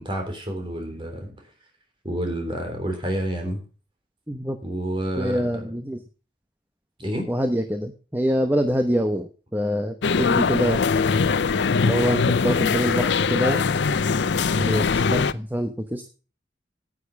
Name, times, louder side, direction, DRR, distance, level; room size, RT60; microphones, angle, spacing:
voice 1, 0.0-1.4 2.0-3.6 4.6-5.5 7.0-7.3, right 1 dB, 30° right, 3 dB, 3.6 m, -29 dB
voice 2, 4.3-4.6 5.2-6.0 7.3-10.8 11.8-13.6 14.6-16.1, equal, 10° right, 7 dB, 0.9 m, -25 dB
sound 1, 10.0-15.3, left 5 dB, 80° left, 0.5 m, -22 dB
9.9 x 8.7 x 7.0 m, 0.37 s
head